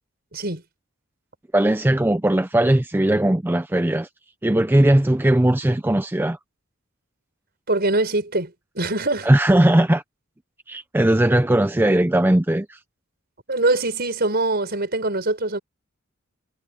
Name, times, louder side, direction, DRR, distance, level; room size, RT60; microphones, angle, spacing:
voice 1, 0.3-0.6 7.7-9.3 13.5-15.6, right 2 dB, 50° right, 5.3 m, -23 dB
voice 2, 1.5-4.1 4.4-6.4 9.2-10.0 10.7-12.8, right 1 dB, 10° right, 0.5 m, -18 dB
head